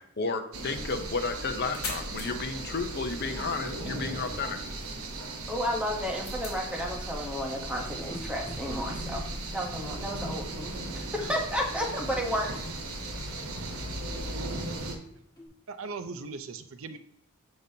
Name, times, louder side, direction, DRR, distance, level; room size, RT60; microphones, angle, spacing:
voice 1, 0.0-4.6, left 4 dB, 50° left, 6 dB, 0.7 m, -32 dB
sound 1, 0.5-15.0, right 2 dB, 85° right, 1.0 m, -37 dB
sound 2, 1.1-6.7, left 4 dB, 65° left, 2.3 m, -45 dB
voice 2, 5.5-9.2 9.5-12.5, equal, 5° right, 0 dB, 1.0 m, -32 dB
sound 3, 8.0-15.5, left 1 dB, 15° left, 1.8 m, -50 dB
voice 3, 15.7-17.0, right 4 dB, 65° right, 10 dB, 0.6 m, -38 dB
7.7 x 5.2 x 2.8 m, 0.71 s
head